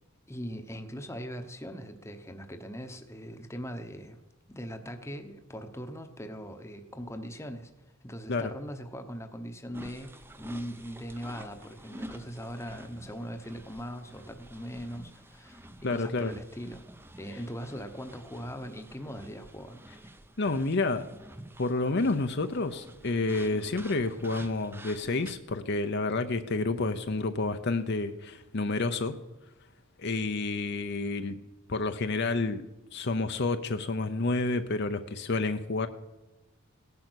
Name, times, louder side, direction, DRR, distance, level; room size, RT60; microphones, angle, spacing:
voice 1, 0.3-4.2 4.5-7.7 8.0-16.8 17.2-19.9, equal, 10° left, 7 dB, 1.0 m, -40 dB
sound 1, 9.7-25.4, right 1 dB, 10° right, 0.7 m, -49 dB
voice 2, 15.8-16.3 20.4-21.0 21.6-29.1 30.0-31.4 31.7-32.7 32.9-35.9, left 3 dB, 50° left, 8 dB, 0.7 m, -29 dB
18.0 x 10.5 x 6.3 m, 1.1 s
head